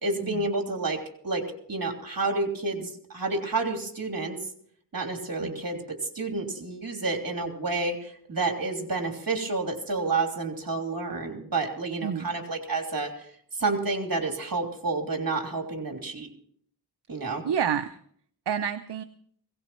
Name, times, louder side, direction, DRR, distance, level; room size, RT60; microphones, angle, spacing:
voice 1, 0.0-4.4 4.9-16.3 17.1-17.4, right 3 dB, 55° right, 3 dB, 3.2 m, -30 dB
voice 2, 17.4-18.0 18.5-19.0, right 8 dB, 75° right, 9 dB, 0.7 m, -29 dB
21.0 x 18.0 x 3.1 m, 0.63 s
wide cardioid pair, 75°, 41 cm